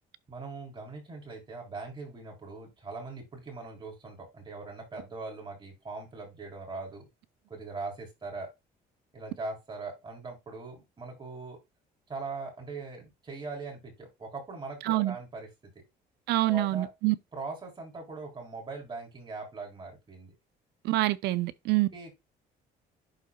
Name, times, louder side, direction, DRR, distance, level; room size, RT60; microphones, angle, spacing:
voice 1, 0.3-7.1 7.5-8.5 9.1-11.6 12.1-15.5 16.4-16.9 17.3-20.3 21.9-22.2, right 3 dB, 30° right, 4.0 m, -41 dB
voice 2, 14.8-15.1 16.3-17.1 20.8-21.9, right 18 dB, 80° right, 0.6 m, -26 dB
11.5 x 4.0 x 2.3 m
cardioid pair, 110°, 17 cm